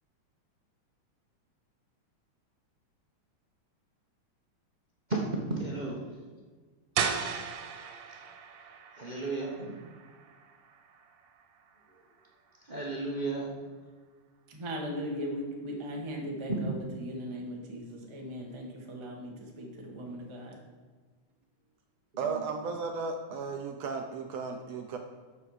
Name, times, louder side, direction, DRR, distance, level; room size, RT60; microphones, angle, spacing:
voice 1, 5.1-6.1 9.0-9.7 12.7-13.5 16.5-16.6, right 3 dB, 55° right, 0.4 m, -33 dB
sound 1, 7.0-12.6, right 6 dB, 90° right, 2.5 m, -37 dB
voice 2, 14.5-20.6, equal, 15° right, 1.0 m, -38 dB
voice 3, 22.2-25.0, right 5 dB, 70° right, 1.6 m, -35 dB
12.5 x 6.9 x 5.0 m
omnidirectional pair, 3.5 m